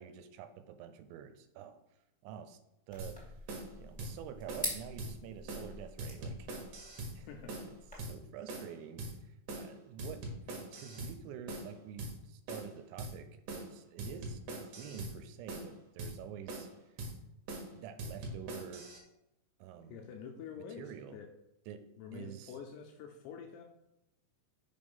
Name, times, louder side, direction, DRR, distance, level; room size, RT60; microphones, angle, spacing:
voice 1, 0.0-1.8 2.2-2.6 2.9-3.4 3.8-6.5 7.1-7.3 7.7-17.0 17.7-18.9 19.6-20.0 20.6-21.2 21.7-21.8 22.1-22.6, right 8 dB, 80° right, 9 dB, 2.8 m, -48 dB
sound 1, 2.9-7.9, left 1 dB, 5° left, 0.5 m, -45 dB
sound 2, 3.0-3.1 3.5-3.7 4.0-4.1 4.5-4.7 5.0-5.1 5.5-5.7 6.0-7.1 7.5-7.7 8.0-8.1 8.5-8.7 9.0-9.1 9.5-9.7 10.0-11.1 11.5-11.7 12.0-12.1 12.5-12.7 13.0-13.1 13.5-13.7 14.0-15.1 15.5-15.7 16.0-16.1 16.5-16.7 17.0-17.1 17.5-17.7 18.0-19.0, right 2 dB, 60° right, 2.3 m, -42 dB
voice 2, 7.3-7.6 19.9-21.3 22.0-23.6, left 7 dB, 80° left, 3 dB, 2.5 m, -47 dB
6.4 x 5.2 x 5.4 m, 0.86 s
omnidirectional pair, 5.4 m